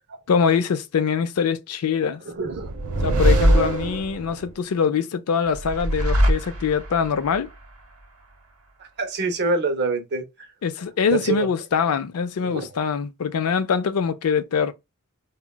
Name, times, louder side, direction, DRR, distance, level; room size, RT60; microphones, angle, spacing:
voice 1, 0.3-2.2 3.0-7.5 10.6-14.7, left 6 dB, 85° left, 0.4 m, -23 dB
voice 2, 2.3-2.7 8.8-10.2 11.1-11.5 12.4-12.7, right 3 dB, 50° right, 0.6 m, -25 dB
sound 1, 2.5-4.5 5.5-7.0, right 1 dB, 80° right, 0.8 m, -21 dB
3.7 x 2.1 x 2.2 m
head